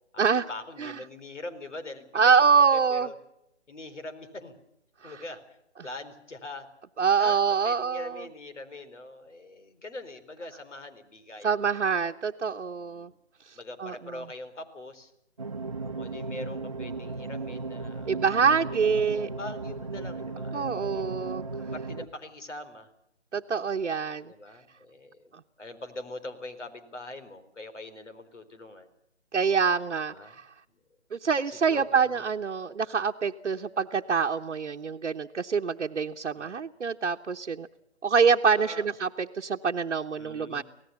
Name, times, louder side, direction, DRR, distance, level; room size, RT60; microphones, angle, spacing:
voice 1, 0.5-2.3 2.7-3.1 3.7-4.6 5.0-5.4 5.8-6.7 7.2-11.8 12.8-13.1 13.5-15.1 15.8-21.0 21.6-22.9 24.2-25.3 25.6-28.9 30.1-30.3 31.5-32.2 36.4-36.6 38.6-38.9 40.2-40.6, left 2 dB, 85° left, 10 dB, 4.3 m, -42 dB
voice 2, 2.1-3.1 5.0-5.2 7.0-8.3 11.4-13.1 13.5-14.2 18.1-19.3 20.5-21.4 23.3-24.3 29.3-30.5 31.1-37.7 38.0-40.6, right 5 dB, 85° right, 2 dB, 1.1 m, -25 dB
sound 1, 15.4-22.1, right 3 dB, 30° right, 0.8 m, -36 dB
25.5 x 18.0 x 7.0 m, 0.81 s
hypercardioid pair, 175°, 35 cm